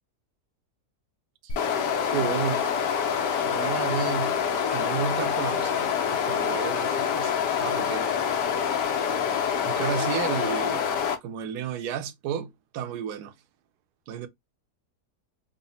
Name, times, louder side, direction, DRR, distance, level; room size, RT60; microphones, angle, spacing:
sound 1, 1.5-11.2, left 7 dB, 85° left, 1.4 m, -26 dB
voice 1, 2.1-2.6 3.4-4.3 4.7-8.1 9.6-10.9 11.2-13.3 14.1-14.3, right 8 dB, 80° right, 1.1 m, -32 dB
3.9 x 2.1 x 3.9 m
omnidirectional pair, 1.7 m